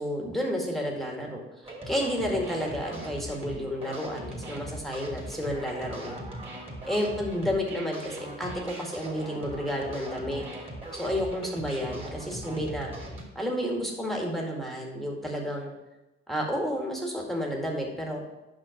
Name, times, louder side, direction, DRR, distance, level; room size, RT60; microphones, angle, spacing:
voice 1, 0.0-6.2 6.9-10.4 10.9-12.9 13.4-15.7 16.3-18.2, equal, ahead, -1 dB, 2.0 m, -31 dB
sound 1, 1.6-13.2, right 1 dB, 15° right, 2.8 m, -40 dB
7.7 x 5.8 x 5.1 m, 1.0 s
hypercardioid pair, 50°, 34 cm